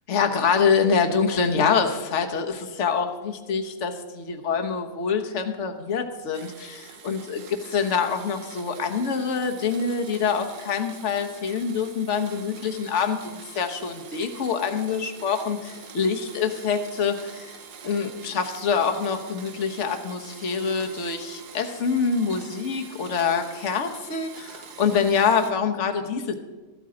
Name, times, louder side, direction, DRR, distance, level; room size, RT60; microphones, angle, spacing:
voice 1, 0.1-17.6 17.8-26.4, left 6 dB, 50° left, 5 dB, 1.3 m, -25 dB
Domestic sounds home sounds, 6.3-25.5, right 6 dB, 85° right, 1.6 m, -44 dB
14.5 x 13.0 x 3.9 m, 1.2 s
omnidirectional pair, 1.7 m